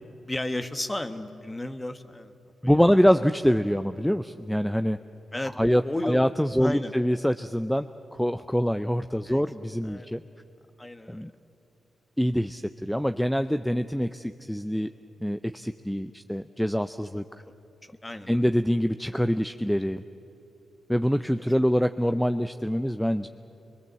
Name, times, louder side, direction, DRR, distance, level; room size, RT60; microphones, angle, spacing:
voice 1, 0.2-2.3 5.3-6.3 6.6-6.9 9.3-9.4 9.8-10.1 10.8-11.3 18.0-18.4, left 1 dB, 20° left, 9 dB, 1.3 m, -33 dB
voice 2, 2.6-5.0 5.6-10.2 11.1-11.3 12.2-14.9 15.2-17.2 18.3-20.0 20.9-23.3, equal, 5° left, 9 dB, 0.6 m, -25 dB
22.0 x 21.5 x 7.6 m, 2.9 s
supercardioid pair, 55°, 0 cm